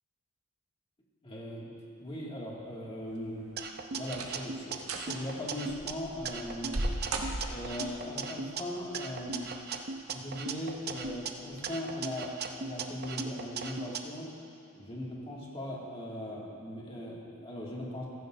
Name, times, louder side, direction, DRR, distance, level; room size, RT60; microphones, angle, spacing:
voice 1, 1.2-1.7 2.0-3.5 3.9-6.8 7.3-9.5 10.1-14.3 14.7-18.1, left 1 dB, 25° left, -4 dB, 2.1 m, -39 dB
sound 1, 3.1-3.5 4.0-4.5 4.8-5.1 5.7-7.9 9.1-9.7 10.1-10.2 10.9-11.2 11.5-11.6, right 2 dB, 75° right, 1.1 m, -36 dB
sound 2, 3.6-5.9 6.3-8.6 8.9-11.3 11.6-14.0, right 5 dB, 45° right, 0.6 m, -38 dB
15.5 x 15.0 x 2.6 m, 2.5 s
head